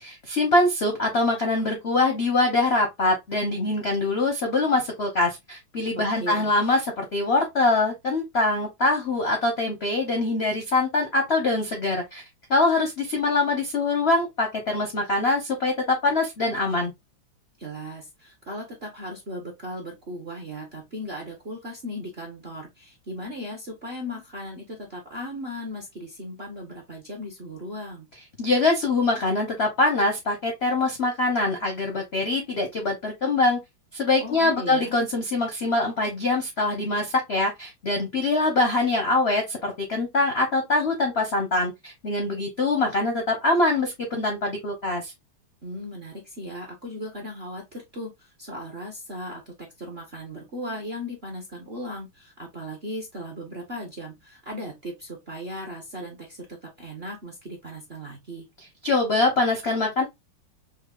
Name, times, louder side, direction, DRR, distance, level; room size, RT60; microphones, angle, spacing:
voice 1, 0.2-12.2 12.5-16.9 28.4-33.6 33.9-45.1 58.8-60.0, left 2 dB, 60° left, 0.6 m, -23 dB
voice 2, 6.0-6.5 17.6-28.1 34.2-35.0 45.6-58.5, equal, 50° right, 0.7 m, -37 dB
5.5 x 2.1 x 2.3 m
omnidirectional pair, 2.2 m